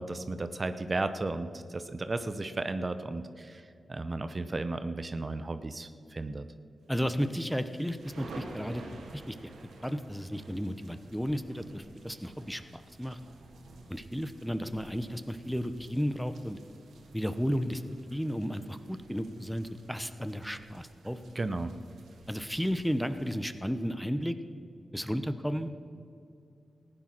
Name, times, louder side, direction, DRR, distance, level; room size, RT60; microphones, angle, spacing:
voice 1, 0.0-6.5 21.3-21.7, right 2 dB, 40° right, 10 dB, 0.8 m, -34 dB
voice 2, 6.9-8.8 9.1-9.5 9.8-13.2 13.9-16.6 17.1-17.8 18.1-21.2 22.3-24.4 24.9-25.7, equal, ahead, 10 dB, 0.9 m, -33 dB
sound 1, 7.0-23.9, right 2 dB, 90° right, 1.7 m, -52 dB
15.0 x 10.0 x 6.1 m, 2.5 s
cardioid pair, 45°, 0 cm